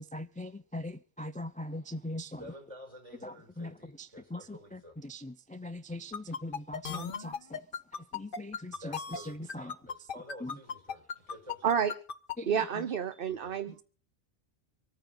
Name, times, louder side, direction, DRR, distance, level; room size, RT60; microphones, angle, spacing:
voice 1, 0.0-2.5 3.2-9.7 10.4-10.6 12.4-12.9 13.7-13.8, left 1 dB, 15° left, 0.3 m, -41 dB
voice 2, 2.4-4.9 8.7-11.8 13.3-13.6, equal, 30° right, 4.9 m, -50 dB
sound 1, 6.1-12.3, left 6 dB, 55° left, 1.0 m, -36 dB
voice 3, 11.6-11.9 12.5-13.8, right 7 dB, 55° right, 1.0 m, -30 dB
25.0 x 9.2 x 3.9 m
omnidirectional pair, 1.1 m